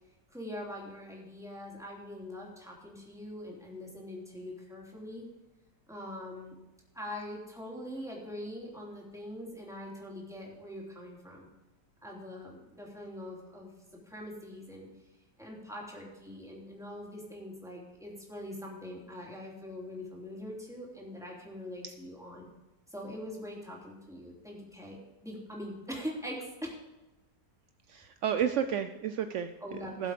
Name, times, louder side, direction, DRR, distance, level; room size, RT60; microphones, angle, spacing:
voice 1, 0.3-5.2 5.9-6.6 6.9-11.5 12.0-13.7 14.1-14.9 15.4-22.5 22.9-26.7 29.6-30.1, left 1 dB, ahead, -3 dB, 3.3 m, -43 dB
voice 2, 27.9-30.1, right 8 dB, 70° right, 9 dB, 0.7 m, -32 dB
17.0 x 7.6 x 5.1 m, 1.0 s
omnidirectional pair, 1.8 m